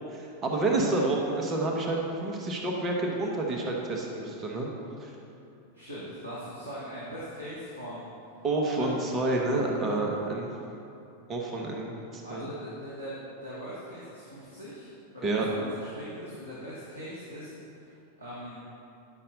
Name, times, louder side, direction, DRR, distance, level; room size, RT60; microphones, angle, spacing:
voice 1, 0.1-4.7 5.0-5.1 8.4-10.5 11.3-12.4 15.2-15.5, right 2 dB, 25° right, -1 dB, 1.0 m, -29 dB
voice 2, 5.7-8.1 8.7-9.0 11.2-11.3 12.2-17.5 17.8-18.6, equal, 90° left, -9 dB, 1.3 m, -41 dB
9.9 x 5.6 x 3.9 m, 2.8 s
figure-of-eight pair, 90°, 0 cm